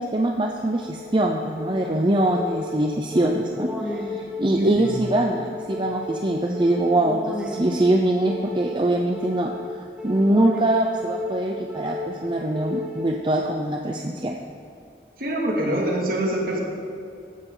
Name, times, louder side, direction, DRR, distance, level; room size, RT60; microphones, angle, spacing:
voice 1, 0.0-9.5 10.0-14.4, right 1 dB, 25° right, 2 dB, 0.6 m, -23 dB
sound 1, 0.5-13.5, left 2 dB, 5° right, 1.3 m, -34 dB
voice 2, 4.6-4.9 15.2-16.6, right 1 dB, 55° right, -2 dB, 2.3 m, -24 dB
15.0 x 10.5 x 3.9 m, 2.5 s
head